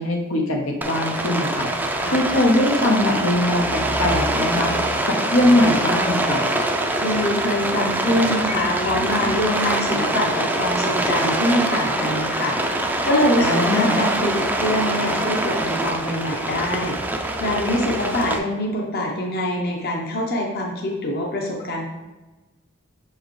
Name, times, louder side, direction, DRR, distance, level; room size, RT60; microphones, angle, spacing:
voice 1, 0.0-6.4 13.4-14.0, left 1 dB, 85° left, 1 dB, 1.1 m, -21 dB
Rain, 0.8-18.4, right 1 dB, 10° right, 0.5 m, -24 dB
voice 2, 7.0-12.7 13.0-21.8, left 1 dB, 50° left, 0 dB, 0.9 m, -24 dB
6.3 x 4.7 x 3.2 m, 1.1 s
head